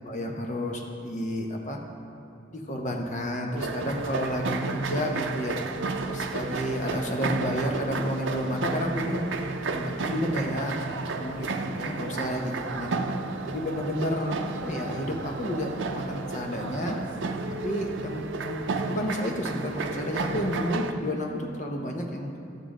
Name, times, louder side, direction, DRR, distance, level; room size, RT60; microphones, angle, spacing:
voice 1, 0.0-1.8 2.5-5.5 6.0-9.2 9.6-10.9 11.2-11.5 11.8-12.9 13.4-17.0 17.6-22.3, equal, 40° left, 1 dB, 0.9 m, -31 dB
sound 1, 3.6-20.9, right 3 dB, 85° right, 0.5 m, -32 dB
12.0 x 7.2 x 3.7 m, 2.8 s
head